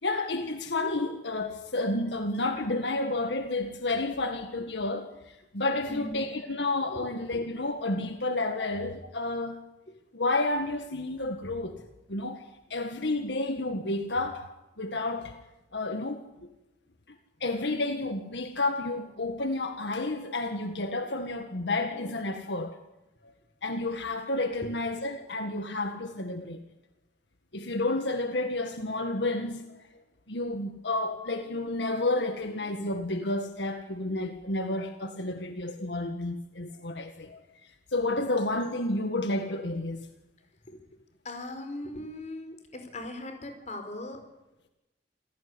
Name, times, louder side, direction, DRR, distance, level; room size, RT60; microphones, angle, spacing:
voice 1, 0.0-9.6 10.1-11.8 12.1-14.5 14.8-15.4 15.7-16.2 17.4-22.8 23.6-26.6 27.5-29.8 30.3-37.4 37.9-40.1, left 2 dB, 80° left, 1.8 m, -31 dB
voice 2, 5.8-6.2 6.9-7.1 8.6-8.7 40.6-40.8 41.2-44.2, left 1 dB, 40° left, 4.9 m, -39 dB
27.5 x 17.0 x 9.7 m
head